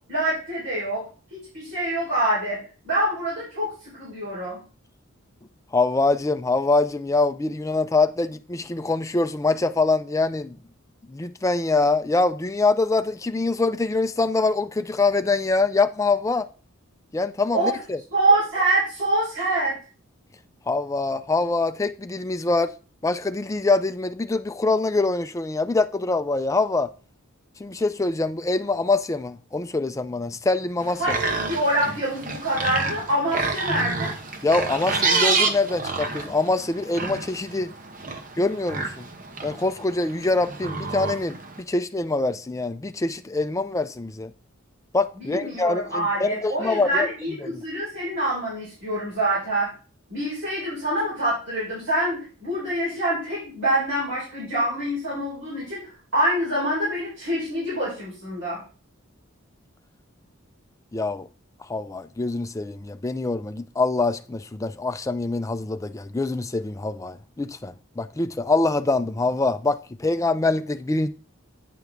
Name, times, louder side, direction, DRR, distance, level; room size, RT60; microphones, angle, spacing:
voice 1, 0.1-1.0 1.3-2.6 2.8-4.6 17.5-17.8 18.1-19.7 31.0-34.1 45.2-49.7 50.1-55.8 56.1-58.6, right 1 dB, 60° right, 4.0 m, -25 dB
voice 2, 5.7-10.6 11.1-16.5 17.1-18.0 20.7-22.7 23.0-26.9 27.6-31.2 34.4-37.7 38.4-39.1 39.4-44.3 44.9-47.1 47.4-47.6 60.9-61.3 61.7-71.1, left 3 dB, 15° left, 0.3 m, -24 dB
sound 1, 30.8-41.6, right 4 dB, 40° right, 0.9 m, -29 dB
9.3 x 4.9 x 3.5 m
head